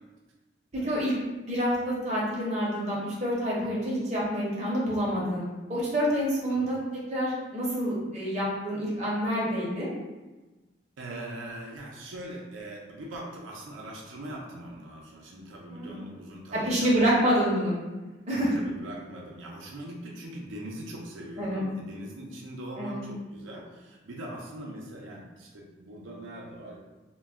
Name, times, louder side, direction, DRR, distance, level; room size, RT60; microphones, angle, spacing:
voice 1, 1.4-5.4 5.7-6.8 7.1-9.9 15.7-16.0 16.5-17.8 18.3-18.5 21.4-21.6 22.8-23.0, equal, 35° right, -5 dB, 0.6 m, -27 dB
voice 2, 11.0-16.9 17.4-17.5 18.3-26.8, right 1 dB, 90° right, -2 dB, 0.5 m, -41 dB
2.2 x 2.0 x 3.4 m, 1.2 s
head